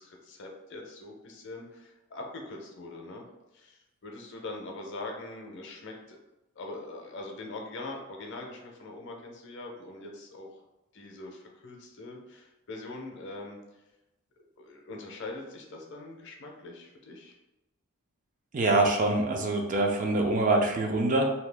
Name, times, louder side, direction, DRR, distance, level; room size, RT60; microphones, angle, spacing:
voice 1, 0.0-3.2 3.5-6.2 6.6-10.5 10.9-13.6 14.6-17.3, left 2 dB, 55° left, 1 dB, 0.6 m, -42 dB
voice 2, 18.5-21.3, right 2 dB, 35° right, 2 dB, 0.4 m, -25 dB
2.8 x 2.3 x 3.3 m, 0.99 s
head